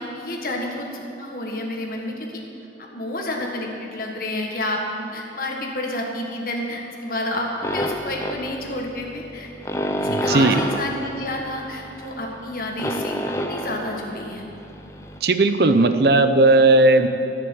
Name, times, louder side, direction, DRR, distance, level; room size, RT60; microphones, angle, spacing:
voice 1, 0.0-2.4 2.9-9.5 10.0-13.1 13.4-14.4, left 1 dB, 50° left, 0 dB, 1.6 m, -29 dB
sound 1, 7.6-15.2, equal, 15° left, 0.6 m, -29 dB
voice 2, 10.1-10.6 15.2-17.1, right 2 dB, 60° right, 9 dB, 0.6 m, -16 dB
10.5 x 6.8 x 8.7 m, 2.9 s
head